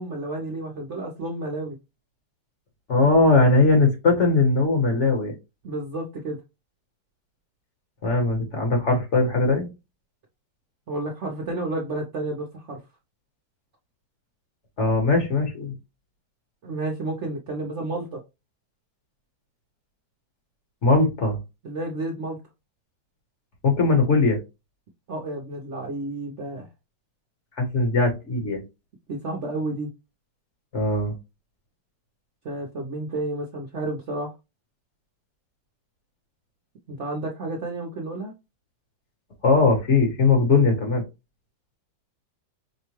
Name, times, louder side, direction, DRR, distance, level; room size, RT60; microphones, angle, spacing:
voice 1, 0.0-1.8 5.6-6.4 10.9-12.8 16.6-18.2 21.6-22.4 25.1-26.7 29.1-29.9 32.4-34.3 36.9-38.3, right 2 dB, 55° right, 0.9 m, -31 dB
voice 2, 2.9-5.3 8.0-9.7 14.8-15.7 20.8-21.4 23.6-24.4 27.6-28.6 30.7-31.1 39.4-41.0, left 3 dB, 45° left, 1.3 m, -20 dB
5.3 x 2.2 x 3.0 m
omnidirectional pair, 1.9 m